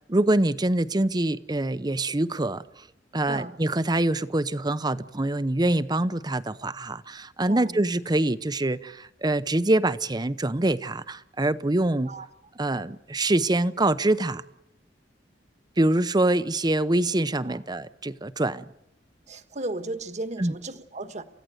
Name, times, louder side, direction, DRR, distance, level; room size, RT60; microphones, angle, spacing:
voice 1, 0.1-2.8 3.1-12.1 12.6-14.4 15.8-18.6 20.4-20.5, right 2 dB, 25° right, 0.8 m, -25 dB
voice 2, 7.5-7.8 12.1-12.3 17.4-17.6 19.3-21.2, right 2 dB, 40° right, 1.4 m, -35 dB
29.0 x 15.5 x 8.1 m
head